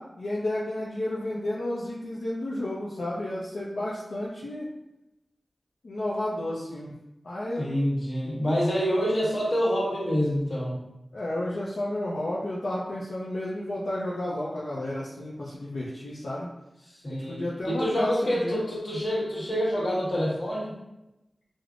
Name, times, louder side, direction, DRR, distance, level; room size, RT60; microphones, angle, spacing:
voice 1, 0.0-4.7 5.8-6.9 7.2-7.7 11.1-16.5 17.1-18.6, left 1 dB, 85° left, -7 dB, 0.5 m, -32 dB
voice 2, 7.6-10.8 17.0-20.8, equal, 60° left, -6 dB, 1.4 m, -27 dB
4.8 x 2.0 x 2.4 m, 0.94 s
cardioid pair, 40°, 0 cm